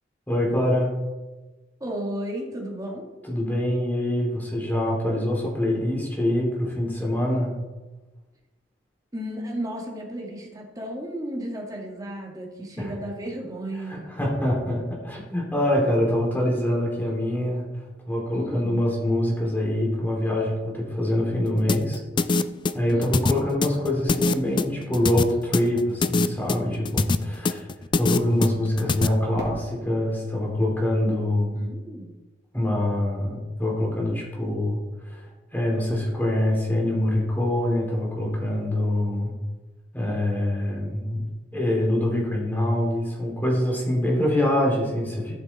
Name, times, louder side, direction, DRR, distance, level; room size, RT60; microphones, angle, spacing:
voice 1, 0.3-0.9 3.3-7.6 12.8-12.9 13.9-17.6 18.1-22.0 22.7-27.7 27.9-31.6 32.5-34.8 35.0-35.2 35.5-39.3 39.9-41.2 41.5-45.3, left 1 dB, 10° left, -3 dB, 3.0 m, -24 dB
voice 2, 1.8-3.0 9.1-14.0 18.3-18.8 22.9-23.4 31.5-32.1, right 1 dB, 20° right, -1 dB, 2.0 m, -34 dB
sound 1, 21.7-29.1, left 3 dB, 25° left, 0.4 m, -23 dB
Fireworks, 29.4-32.2, equal, 70° right, 2.4 m, -42 dB
14.5 x 5.9 x 4.2 m, 1.2 s
head